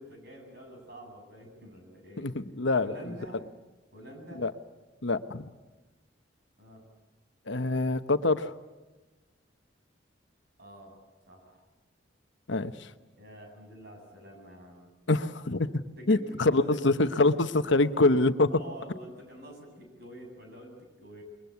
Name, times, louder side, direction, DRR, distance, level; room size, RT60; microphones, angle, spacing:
voice 1, 0.0-2.3 2.8-3.4 3.9-4.4 6.6-6.8 10.6-11.6 13.1-14.9 16.0-16.8 18.5-21.2, equal, 55° right, 2 dB, 7.9 m, -47 dB
voice 2, 2.2-3.1 4.4-4.5 5.0-5.5 7.5-8.5 12.5-12.9 15.1-18.5, left 2 dB, 70° left, 10 dB, 1.1 m, -25 dB
28.0 x 22.0 x 8.2 m, 1.2 s
head